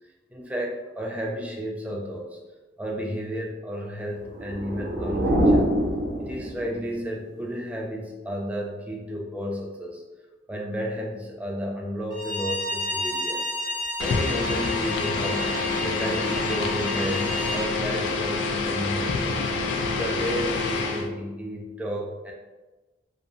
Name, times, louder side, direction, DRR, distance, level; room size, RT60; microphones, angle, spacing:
voice 1, 0.3-2.3 2.8-5.6 6.2-10.0 10.5-13.4 14.0-17.3 17.5-19.3 19.9-22.3, equal, 10° right, -1 dB, 0.3 m, -32 dB
sound 1, 4.2-6.9, right 1 dB, 90° right, 0.6 m, -24 dB
Bowed string instrument, 12.1-17.7, equal, 50° left, 1.2 m, -32 dB
sound 2, 14.0-21.1, left 3 dB, 90° left, 0.3 m, -27 dB
2.7 x 2.0 x 2.4 m, 1.2 s
head